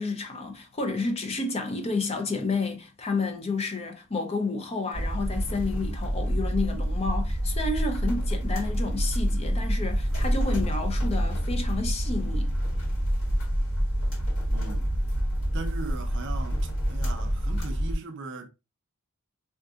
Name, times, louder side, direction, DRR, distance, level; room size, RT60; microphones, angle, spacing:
voice 1, 0.0-12.5, left 3 dB, 30° left, 0.5 m, -30 dB
sound 1, 4.9-17.9, equal, 60° left, 1.4 m, -27 dB
voice 2, 14.5-14.9 15.5-18.5, right 3 dB, 55° right, 0.5 m, -39 dB
3.7 x 2.5 x 2.4 m
head